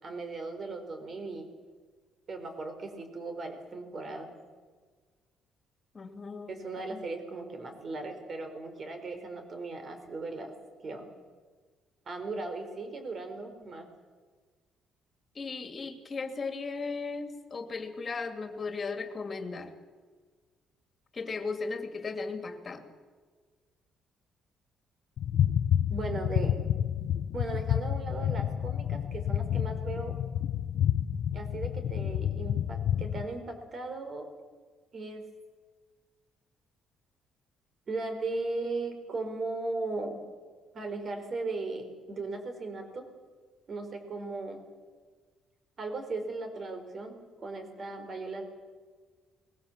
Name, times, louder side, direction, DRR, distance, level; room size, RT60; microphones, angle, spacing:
voice 1, 0.0-1.5 2.3-4.3 6.5-10.5 10.8-11.1 12.1-13.9 25.9-26.6 27.3-30.1 31.3-34.3 34.9-35.2 37.9-40.2 40.7-43.1 43.7-44.6 45.8-48.4, right 3 dB, 40° right, 6 dB, 4.3 m, -37 dB
voice 2, 5.9-6.6 6.9-7.0 15.3-19.7 21.1-22.9, left 4 dB, 30° left, 6 dB, 2.6 m, -36 dB
sound 1, 25.2-33.2, left 10 dB, 65° left, 0.9 m, -29 dB
22.0 x 21.0 x 7.4 m, 1.5 s
cardioid pair, 135°, 0 cm